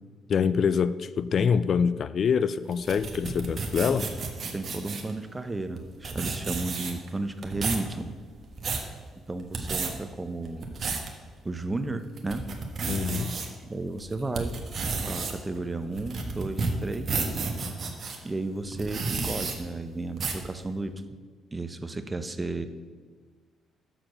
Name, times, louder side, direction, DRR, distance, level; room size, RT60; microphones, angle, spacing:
voice 1, 0.3-4.1 12.9-13.4, left 6 dB, 55° left, 15 dB, 0.3 m, -25 dB
sound 1, 2.7-5.1 5.8-5.9 6.0-7.1 7.4-7.9 8.3-8.9 9.4-9.9 10.4-11.1 11.6-11.7 12.2-13.5 14.0-18.2 18.7-19.5 20.2-20.5, right 4 dB, 50° right, 1.3 m, -31 dB
voice 2, 4.5-8.1 9.3-10.7 11.4-12.5 13.4-14.6 15.0-17.4 18.2-21.0 21.5-22.7, right 2 dB, 20° right, 9 dB, 0.7 m, -33 dB
6.7 x 6.0 x 6.3 m, 1.5 s
supercardioid pair, 70°, 0 cm